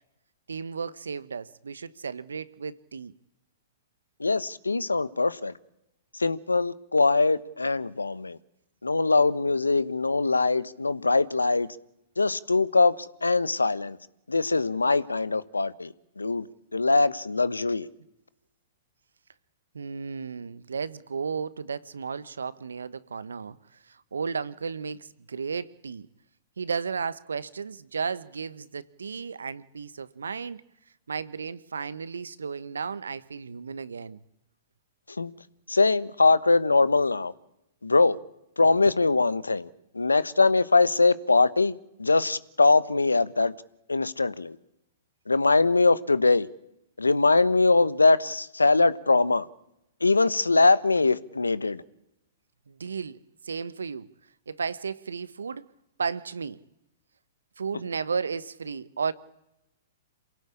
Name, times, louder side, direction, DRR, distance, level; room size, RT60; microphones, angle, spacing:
voice 1, 0.5-3.1 19.7-23.6 23.8-26.1 26.6-30.6 31.1-34.2 38.6-38.7 52.7-54.1 54.5-55.7 56.0-56.6 57.6-59.1, right 5 dB, 80° right, 1.1 m, -34 dB
voice 2, 4.2-5.5 6.2-8.4 8.8-11.7 12.2-14.0 14.3-16.5 16.7-17.9 35.2-35.3 35.7-37.3 37.8-38.2 38.6-39.7 39.9-43.5 43.9-44.5 45.3-46.5 47.0-49.5 50.0-51.8, left 3 dB, 90° left, 1.0 m, -22 dB
27.5 x 17.5 x 8.6 m
figure-of-eight pair, 115°, 0 cm